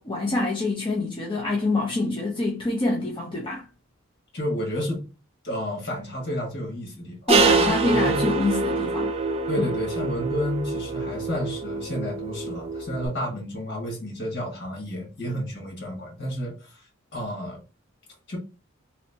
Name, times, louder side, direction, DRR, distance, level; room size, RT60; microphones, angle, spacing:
voice 1, 0.0-3.6 7.3-9.1 9.6-9.7, left 2 dB, 25° left, 0.6 m, -26 dB
voice 2, 4.3-5.0 5.4-7.2 7.9-8.3 9.5-16.8 17.1-17.6 18.3-18.4, equal, 55° left, 1.7 m, -31 dB
sound 1, 7.3-13.1, right 4 dB, 30° right, 0.4 m, -25 dB
3.2 x 2.7 x 2.7 m
head